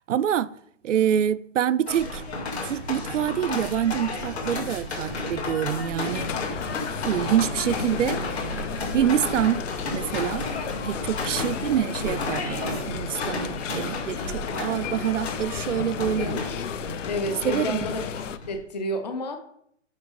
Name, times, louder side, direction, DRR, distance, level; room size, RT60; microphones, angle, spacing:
voice 1, 0.1-0.5 0.8-2.2 2.6-6.3 7.0-8.2 8.9-9.7 9.9-10.5 10.8-16.5 17.4-17.8, right 10 dB, 75° right, 0.5 m, -26 dB
sound 1, 1.9-18.6, left 2 dB, 60° left, 2.6 m, -33 dB
sound 2, 6.0-18.4, left 8 dB, 75° left, 0.6 m, -33 dB
voice 2, 17.1-18.0 18.5-19.4, left 1 dB, 35° left, 0.7 m, -29 dB
6.5 x 5.4 x 5.3 m
hypercardioid pair, 180°, 37 cm